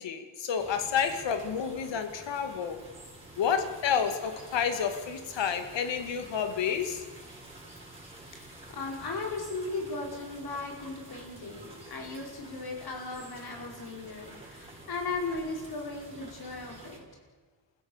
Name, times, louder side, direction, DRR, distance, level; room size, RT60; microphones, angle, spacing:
voice 1, 0.0-2.9 3.4-7.1, left 7 dB, 70° left, 8 dB, 2.3 m, -30 dB
sound 1, 0.6-17.0, right 1 dB, 10° right, 7.9 m, -49 dB
voice 2, 8.3-17.0, left 3 dB, 50° left, 1 dB, 5.3 m, -37 dB
28.0 x 16.0 x 7.3 m, 1.4 s
cardioid pair, 100°, 46 cm